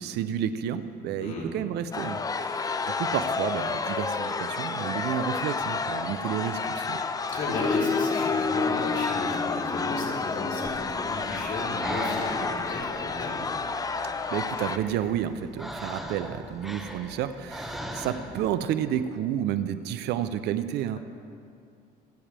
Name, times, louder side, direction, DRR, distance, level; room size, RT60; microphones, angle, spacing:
voice 1, 0.0-2.6 3.0-7.0 14.3-21.0, right 10 dB, 80° right, 12 dB, 0.7 m, -30 dB
voice 2, 1.2-1.5 7.3-13.5, left 2 dB, 55° left, -4 dB, 3.3 m, -33 dB
sound 1, 1.9-14.8, left 4 dB, 20° left, 0.5 m, -29 dB
Breathing, 10.6-18.5, equal, ahead, 1.2 m, -39 dB
26.0 x 8.8 x 3.4 m, 2.4 s
cardioid pair, 110°, 17 cm